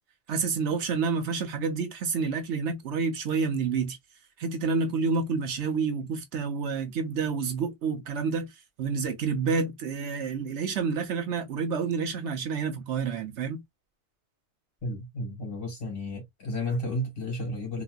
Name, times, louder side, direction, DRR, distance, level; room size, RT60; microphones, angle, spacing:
voice 1, 0.3-4.0 4.4-13.6, right 5 dB, 70° right, 1.0 m, -29 dB
voice 2, 14.8-17.8, left 1 dB, 45° left, 2.2 m, -32 dB
3.9 x 2.5 x 2.3 m
omnidirectional pair, 1.3 m